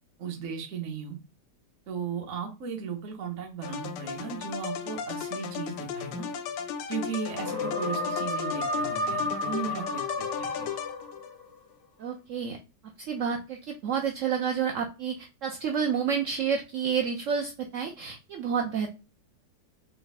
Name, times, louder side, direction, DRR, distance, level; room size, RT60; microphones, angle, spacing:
voice 1, 0.2-1.2 1.9-6.3 6.9-10.0 10.4-10.7, right 6 dB, 55° right, 2 dB, 1.0 m, -36 dB
sound 1, 3.6-11.3, left 7 dB, 85° left, 1.3 m, -36 dB
sound 2, 7.4-11.5, left 2 dB, 35° left, 0.3 m, -32 dB
voice 2, 12.0-12.6 13.0-19.0, right 7 dB, 75° right, 3 dB, 0.7 m, -29 dB
3.9 x 2.3 x 4.0 m, 0.30 s
omnidirectional pair, 1.9 m